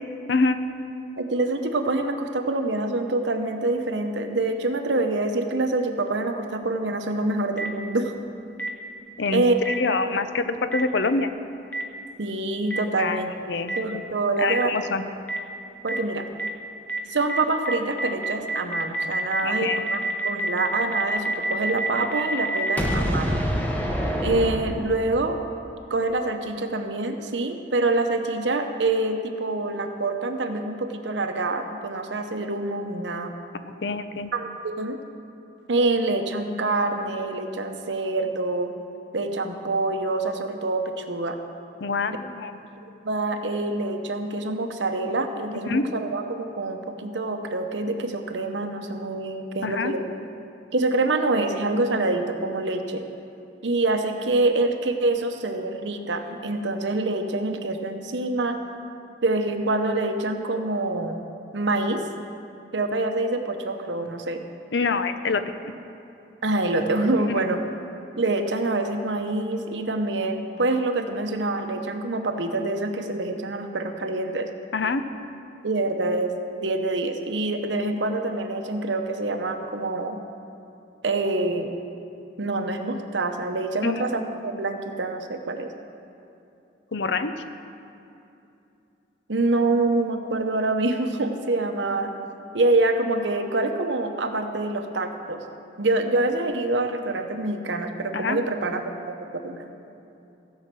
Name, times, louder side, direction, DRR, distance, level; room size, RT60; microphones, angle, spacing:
voice 1, 1.2-8.1 9.3-9.6 10.0-10.2 12.2-13.3 13.8-14.8 15.8-16.2 17.1-23.4 24.2-25.4 25.9-33.3 34.3-35.0 35.7-38.7 39.1-41.4 43.0-50.1 50.7-53.0 53.6-58.6 59.2-61.2 61.5-62.0 62.7-64.4 66.4-67.6 68.2-74.5 75.6-80.2 81.0-81.7 82.4-85.7 89.3-92.1 92.5-95.4 95.8-99.7, right 2 dB, 85° right, 5 dB, 0.9 m, -26 dB
Boom, 7.6-7.7 8.6-8.7 9.6-9.7 10.7-10.8 11.7-11.8 12.7-12.8 13.7-13.8 14.5-14.6 15.3-15.4 15.9-16.0 16.4-16.5 16.9-17.0 17.3-17.4 17.6-25.2, right 1 dB, 10° left, 0.9 m, -26 dB
voice 2, 9.8-11.3 13.0-13.2 13.5-14.0 14.4-15.0 19.4-19.8 33.8-34.3 41.8-42.6 45.7-45.8 49.6-49.9 64.7-65.4 67.4-67.5 74.7-75.0 83.8-84.0 86.9-87.3 98.1-98.4, left 4 dB, 75° left, 10 dB, 0.6 m, -25 dB
15.5 x 5.7 x 7.6 m, 2.7 s
head